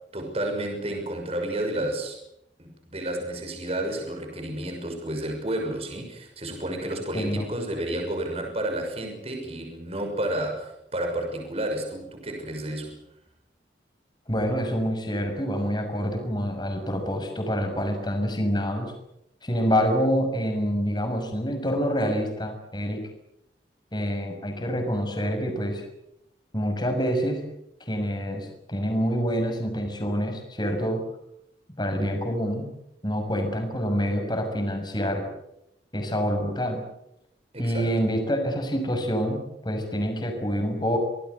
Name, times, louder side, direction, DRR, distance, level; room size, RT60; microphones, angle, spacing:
voice 1, 0.1-2.2 2.6-12.9 37.5-37.9, right 1 dB, 35° right, 3 dB, 6.2 m, -31 dB
voice 2, 7.1-7.5 14.3-18.9 19.4-23.1 23.9-25.8 26.5-27.4 27.9-31.0 31.8-32.7 33.0-35.3 35.9-36.8 37.6-41.0, equal, 25° left, 4 dB, 6.3 m, -27 dB
27.5 x 19.5 x 8.3 m, 0.81 s
head